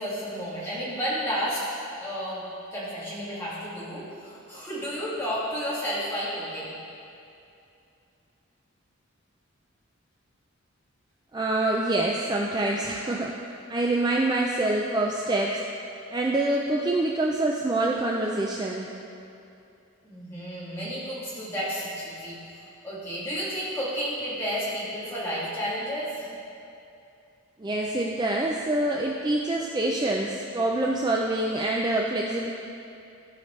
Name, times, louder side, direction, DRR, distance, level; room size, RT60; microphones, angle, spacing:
voice 1, 0.0-1.7 2.0-2.5 2.7-6.8 20.0-26.3, equal, 10° left, -9 dB, 2.0 m, -32 dB
voice 2, 11.3-13.3 13.7-15.6 16.1-18.9 27.6-32.5, right 2 dB, 20° right, -1 dB, 0.4 m, -26 dB
14.5 x 5.7 x 3.2 m, 2.7 s
head